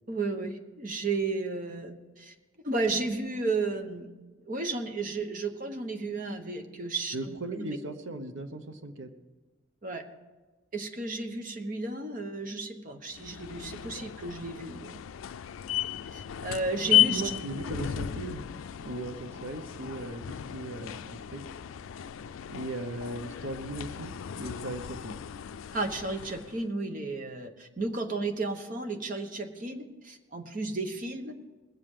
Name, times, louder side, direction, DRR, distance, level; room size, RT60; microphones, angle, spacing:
voice 1, 0.1-2.3 2.6-4.1 4.5-7.4 9.8-10.1 10.7-15.0 16.1-17.2 25.7-31.3, right 3 dB, 40° right, 5 dB, 1.1 m, -33 dB
voice 2, 7.1-9.1 16.9-18.4 18.8-21.4 22.5-25.2, right 2 dB, 75° right, 8 dB, 1.0 m, -38 dB
sound 1, 13.1-26.6, left 12 dB, 80° left, 0.4 m, -33 dB
20.0 x 7.6 x 5.0 m, 1.2 s
head